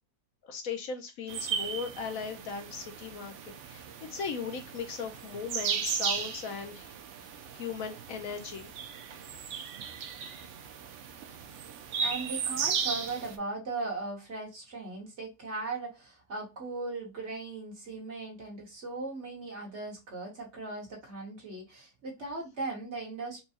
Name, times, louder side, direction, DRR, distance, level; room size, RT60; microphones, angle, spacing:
voice 1, 0.4-6.9 7.2-8.7 9.3-9.5, left 5 dB, 70° left, 1.1 m, -38 dB
sound 1, 1.3-13.4, right 6 dB, 65° right, 0.8 m, -36 dB
voice 2, 12.0-23.4, right 3 dB, 50° right, 1.6 m, -38 dB
4.5 x 2.3 x 2.7 m
omnidirectional pair, 1.6 m